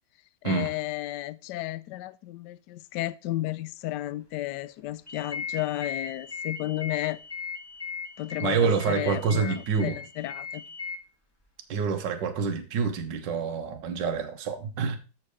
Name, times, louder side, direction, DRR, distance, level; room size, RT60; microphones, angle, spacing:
voice 1, 0.4-7.2 8.2-10.6, left 15 dB, 70° left, 1.0 m, -33 dB
sound 1, 5.1-11.0, left 5 dB, 15° left, 1.4 m, -38 dB
voice 2, 8.4-10.0 11.7-15.0, right 5 dB, 60° right, 1.7 m, -27 dB
7.6 x 7.1 x 4.8 m
omnidirectional pair, 2.3 m